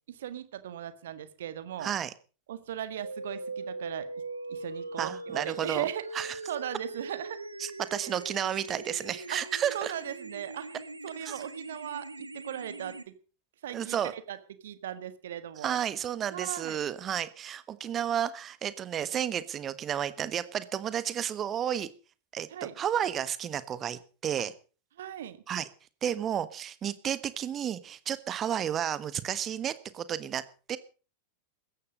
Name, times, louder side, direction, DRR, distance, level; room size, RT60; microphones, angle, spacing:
voice 1, 0.2-1.9 2.5-4.1 4.5-7.4 8.0-8.1 9.3-9.4 9.7-10.7 11.0-13.1 13.6-15.8 16.3-16.8 22.5-22.7 25.0-25.4, right 10 dB, 60° right, 12 dB, 1.7 m, -38 dB
voice 2, 1.8-2.1 5.0-5.9 6.1-6.4 7.6-9.9 11.2-11.4 13.7-14.1 15.6-21.9 22.3-22.5 22.8-24.5 25.5-25.7 26.0-30.4 30.7-30.8, right 9 dB, 25° right, 15 dB, 1.3 m, -32 dB
sound 1, 3.0-13.0, right 3 dB, 80° right, 1.3 m, -41 dB
17.0 x 14.0 x 5.2 m, 0.38 s
figure-of-eight pair, 90°, 0 cm